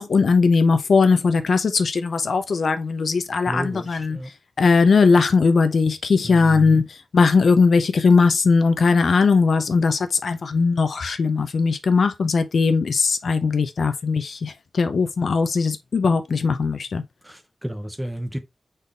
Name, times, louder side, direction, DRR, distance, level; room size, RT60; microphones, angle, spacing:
voice 1, 0.0-4.2 4.6-17.0, left 4 dB, 75° left, 0.6 m, -19 dB
voice 2, 3.5-4.3 6.2-6.8 17.2-18.4, equal, 5° right, 0.9 m, -32 dB
4.1 x 3.7 x 3.4 m
wide cardioid pair, 120°, 0 cm